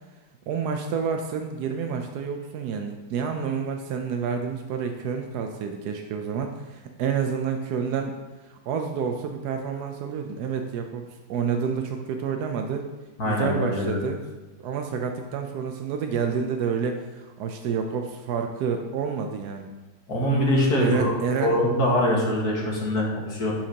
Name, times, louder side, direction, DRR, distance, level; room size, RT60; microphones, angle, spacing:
voice 1, 0.5-8.2 8.5-12.8 13.2-14.2 14.6-19.7 20.8-21.6, right 6 dB, 75° right, 4 dB, 0.9 m, -29 dB
voice 2, 13.2-14.0 20.1-21.1 21.4-23.5, left 1 dB, 50° left, -3 dB, 2.0 m, -23 dB
11.5 x 5.8 x 2.9 m, 1.2 s
omnidirectional pair, 2.3 m